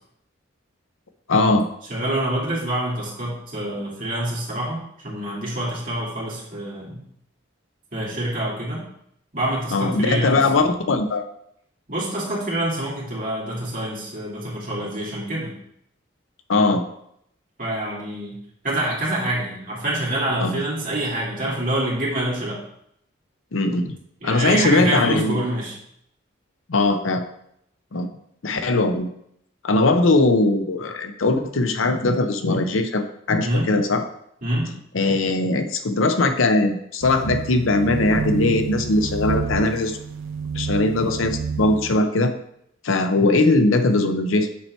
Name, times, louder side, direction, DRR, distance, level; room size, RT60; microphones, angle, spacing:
voice 1, 1.3-1.7 9.7-11.2 16.5-16.8 20.4-20.6 23.5-23.9 24.2-25.4 26.7-27.2 27.9-28.1 28.4-29.1 29.6-34.0 34.9-40.0 40.5-42.3 42.8-44.5, left 2 dB, 80° left, 8 dB, 0.7 m, -20 dB
voice 2, 1.9-7.0 7.9-8.8 9.3-10.4 11.9-15.5 17.6-18.3 18.6-22.6 24.2-25.7 33.4-33.7 34.4-34.7, right 1 dB, 45° right, -5 dB, 2.7 m, -26 dB
sound 1, 37.0-42.0, right 5 dB, 80° right, 0.5 m, -29 dB
7.2 x 4.5 x 4.5 m, 0.72 s
head